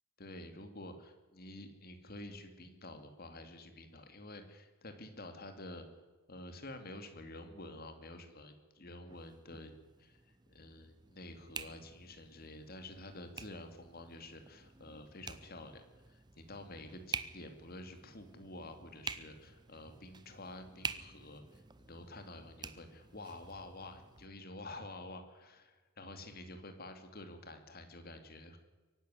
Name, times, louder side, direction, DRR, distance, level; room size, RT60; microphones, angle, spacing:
voice 1, 0.2-6.0 6.3-9.7 10.0-28.6, left 1 dB, 45° left, 7 dB, 2.3 m, -49 dB
sound 1, 9.1-24.3, right 5 dB, 20° right, 0.8 m, -48 dB
23.5 x 11.0 x 9.8 m, 1.3 s
head